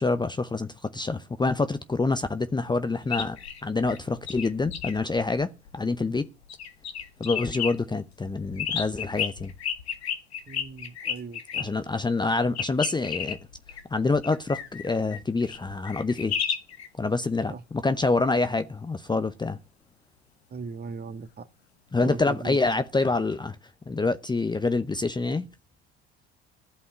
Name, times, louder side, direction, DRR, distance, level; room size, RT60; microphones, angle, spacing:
voice 1, 0.0-6.3 7.2-9.5 11.6-13.4 13.9-16.3 17.0-19.6 21.9-23.6 23.9-25.5, left 3 dB, 15° left, 0.8 m, -26 dB
sound 1, 3.0-6.2 6.5-7.7 8.2-11.7 12.6-16.9 22.7-22.8, left 8 dB, 80° left, 1.7 m, -33 dB
voice 2, 10.5-11.7 17.5-17.6 20.5-21.4 22.0-22.6, right 4 dB, 30° right, 1.6 m, -38 dB
15.0 x 5.5 x 8.0 m
figure-of-eight pair, 60°, 31 cm